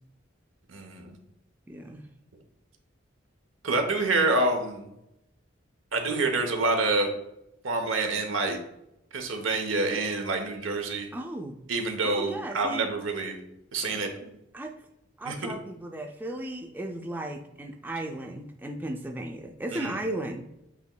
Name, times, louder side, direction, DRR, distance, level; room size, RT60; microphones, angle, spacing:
voice 1, 0.7-1.2 3.6-4.9 5.9-7.1 7.6-8.6 9.1-11.1 11.7-13.4 13.7-14.3 15.2-15.3 19.7-20.0, right 3 dB, 85° right, 4 dB, 0.9 m, -27 dB
voice 2, 1.7-2.1 11.1-11.6 12.0-12.9 14.5-14.7 15.2-20.5, right 1 dB, 10° right, 3 dB, 0.3 m, -35 dB
8.0 x 3.0 x 2.2 m, 0.84 s
head